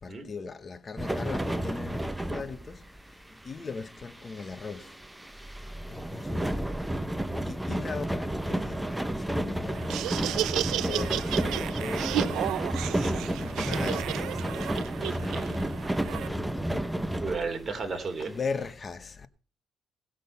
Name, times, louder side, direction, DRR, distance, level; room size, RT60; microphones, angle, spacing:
voice 1, 0.0-5.0 5.6-6.6 7.0-7.1 7.4-10.0 10.5-12.6 13.2-17.1 18.2-19.3, left 4 dB, 35° left, 1.0 m, -40 dB
sound 1, 1.0-17.8 18.4-18.5 18.7-18.8, right 1 dB, 10° right, 0.9 m, -32 dB
Laughter, 9.7-16.3, right 13 dB, 85° right, 0.5 m, -33 dB
voice 2, 17.2-18.3, right 4 dB, 35° right, 3.2 m, -33 dB
18.5 x 6.4 x 5.5 m
cardioid pair, 90°, 0 cm